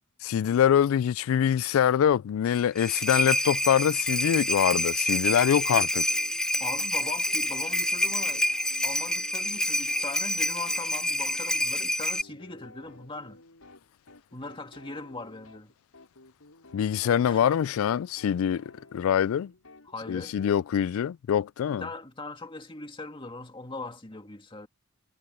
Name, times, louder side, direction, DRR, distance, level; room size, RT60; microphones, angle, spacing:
voice 1, 0.2-6.1 16.7-19.5 20.1-21.9, left 9 dB, 70° left, 0.3 m, -24 dB
sound 1, 2.5-12.2, left 1 dB, 5° left, 0.9 m, -27 dB
sound 2, 5.6-20.6, left 2 dB, 90° left, 5.6 m, -53 dB
voice 2, 6.6-8.5 8.8-13.4 14.3-15.7 17.2-17.5 19.9-20.3 21.7-24.7, left 3 dB, 25° left, 2.1 m, -40 dB
head